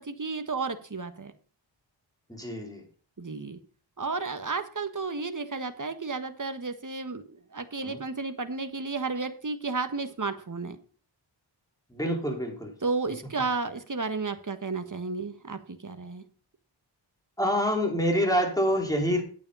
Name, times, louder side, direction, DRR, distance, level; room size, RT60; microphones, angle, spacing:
voice 1, 0.0-1.3 3.2-3.6 4.0-10.8 12.8-16.2, right 4 dB, 40° right, 9 dB, 1.5 m, -32 dB
voice 2, 2.3-2.8 7.8-8.0 11.9-12.7 17.4-19.2, equal, 5° left, 1 dB, 4.5 m, -26 dB
9.8 x 8.6 x 5.5 m, 0.41 s
wide cardioid pair, 50°, 47 cm